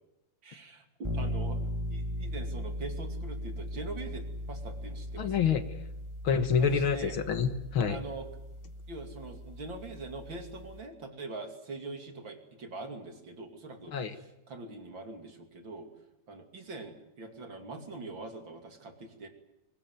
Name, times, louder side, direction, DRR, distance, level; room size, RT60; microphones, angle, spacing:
voice 1, 0.4-1.6 1.9-5.4 6.6-7.2 7.9-8.3 8.9-15.9 16.3-19.3, right 3 dB, 40° right, 6 dB, 3.1 m, -43 dB
sound 1, 1.0-10.9, equal, 10° right, 1.9 m, -38 dB
voice 2, 5.2-5.6 6.2-8.0 13.9-14.1, left 6 dB, 50° left, 10 dB, 1.9 m, -27 dB
24.0 x 19.5 x 9.3 m, 0.90 s
omnidirectional pair, 3.4 m